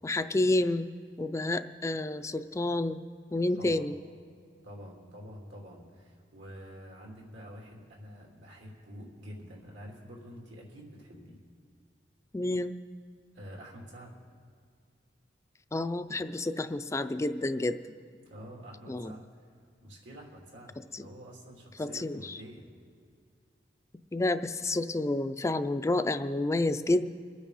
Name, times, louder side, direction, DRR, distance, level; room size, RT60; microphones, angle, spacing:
voice 1, 0.0-0.9 1.2-3.0 3.3-3.9 12.3-12.8 15.7-17.8 18.9-19.1 20.9-21.0 21.8-22.4 24.1-27.1, left 2 dB, 15° left, 10 dB, 0.4 m, -29 dB
voice 2, 3.5-3.9 4.6-11.4 13.3-14.2 18.2-19.2 19.8-22.7, equal, 85° right, -2 dB, 3.1 m, -47 dB
25.0 x 9.5 x 4.1 m, 2.2 s
head